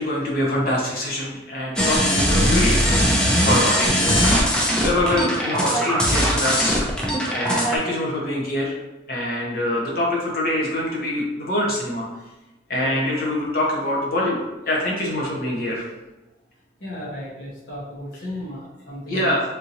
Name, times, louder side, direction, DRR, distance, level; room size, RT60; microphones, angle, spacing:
voice 1, 0.0-4.1 4.5-6.8 7.3-8.7 9.1-12.1 12.7-15.8 19.1-19.4, left 1 dB, 50° left, -4 dB, 1.0 m, -24 dB
sound 1, 1.8-7.8, equal, 5° left, 0.4 m, -20 dB
voice 2, 16.8-19.3, left 1 dB, 70° left, -6 dB, 1.2 m, -34 dB
3.6 x 2.8 x 2.6 m, 1.0 s
head